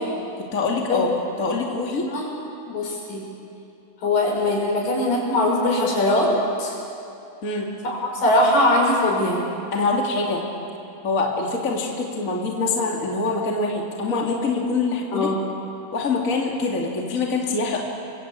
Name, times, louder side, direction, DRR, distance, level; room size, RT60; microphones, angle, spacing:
voice 1, 0.4-1.1 1.4-2.1 7.4-7.7 9.7-10.4 11.0-15.3 15.9-17.8, left 3 dB, 25° left, -1 dB, 2.8 m, -24 dB
voice 2, 1.9-2.3 2.7-3.2 4.0-6.3 6.6-6.8 7.8-9.4 15.1-15.4, left 1 dB, 65° left, -1 dB, 7.3 m, -21 dB
29.5 x 23.5 x 8.6 m, 2.7 s
omnidirectional pair, 4.2 m